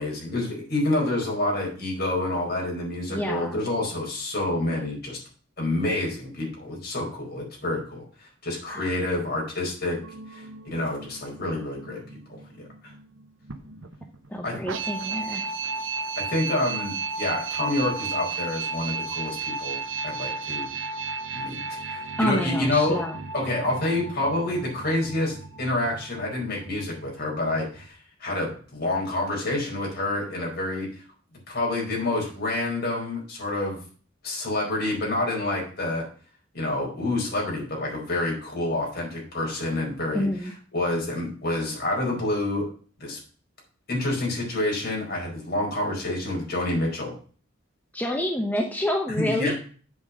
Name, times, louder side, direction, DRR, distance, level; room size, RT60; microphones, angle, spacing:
voice 1, 0.0-5.2 5.6-8.0 8.4-10.0 10.3-10.4 10.7-12.0 14.4-14.6 16.2-19.8 20.0-20.7 21.3-23.0 23.3-27.9 28.2-30.9 31.5-33.8 34.2-36.0 36.5-40.3 40.7-42.7 43.0-43.2 43.9-47.1 49.2-49.5, left 2 dB, 55° left, -2 dB, 4.7 m, -28 dB
voice 2, 3.1-3.6 8.7-8.8 14.3-15.4 22.2-23.2 40.1-40.5 47.9-49.5, left 1 dB, 10° left, 2 dB, 0.9 m, -28 dB
sound 1, 10.0-27.9, right 4 dB, 80° right, 1.0 m, -34 dB
8.0 x 5.2 x 6.1 m, 0.42 s
head